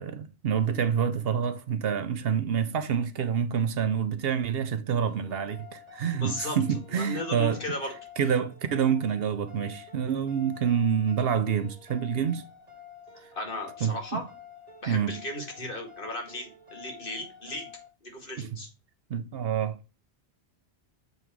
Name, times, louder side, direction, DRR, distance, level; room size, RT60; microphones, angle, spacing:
voice 1, 0.0-7.6 8.2-12.4 13.8-14.2 14.9-15.2 18.4-18.5 19.1-19.9, right 7 dB, 65° right, 0.8 m, -27 dB
sound 1, 5.1-17.9, left 7 dB, 35° right, 1.4 m, -49 dB
voice 2, 6.1-6.6 6.9-7.9 13.3-14.3 14.8-17.7 18.0-18.7, left 1 dB, 50° left, 2.1 m, -36 dB
8.0 x 3.5 x 4.6 m
omnidirectional pair, 1.1 m